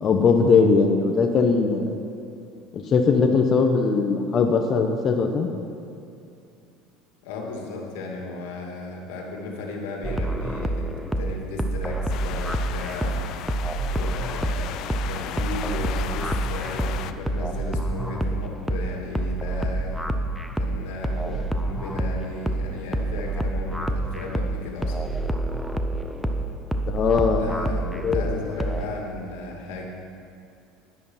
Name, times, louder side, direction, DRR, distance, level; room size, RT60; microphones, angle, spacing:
voice 1, 0.0-1.9 2.7-5.5 26.9-27.4 28.0-28.2, left 5 dB, 35° left, 3 dB, 0.9 m, -20 dB
voice 2, 7.2-13.5 13.9-20.1 20.6-25.0 27.4-29.9, left 3 dB, 90° left, 0 dB, 2.2 m, -35 dB
sound 1, 10.0-28.9, right 1 dB, 5° right, 0.7 m, -28 dB
sound 2, 12.1-17.1, left 10 dB, 55° left, 0.5 m, -35 dB
11.5 x 9.8 x 5.7 m, 2.5 s
cardioid pair, 135°, 0 cm